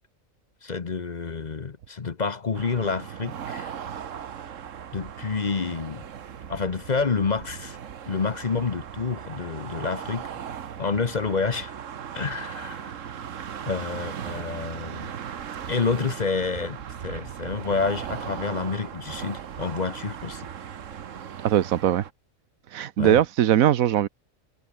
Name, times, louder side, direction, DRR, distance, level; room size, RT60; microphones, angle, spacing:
voice 1, 0.6-3.7 4.9-6.0 6.5-7.8 8.1-10.3 10.8-11.7 12.1-12.9 13.7-15.1 15.7-16.8 17.0-20.5 23.0-23.2, left 4 dB, 35° left, 1.0 m, -28 dB
sound 1, 2.5-22.1, right 8 dB, 65° right, 1.4 m, -38 dB
voice 2, 21.4-22.0 22.7-24.1, right 11 dB, 90° right, 1.2 m, -20 dB
omnidirectional pair, 1.4 m